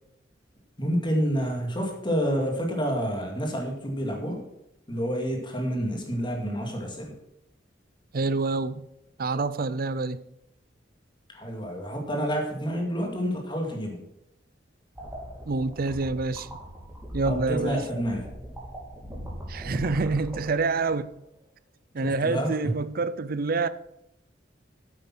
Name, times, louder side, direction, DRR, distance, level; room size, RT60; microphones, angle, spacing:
voice 1, 0.8-4.4 4.9-7.1 11.3-14.0 17.3-18.3 22.0-22.7, equal, 25° left, 2.2 m, -28 dB
voice 2, 8.1-8.8 9.2-10.2 15.5-16.5 17.1-17.8 19.5-21.1 21.9-23.7, right 3 dB, 55° right, 0.5 m, -27 dB
sound 1, 15.0-21.1, right 1 dB, 10° right, 3.1 m, -39 dB
8.7 x 8.5 x 6.1 m
head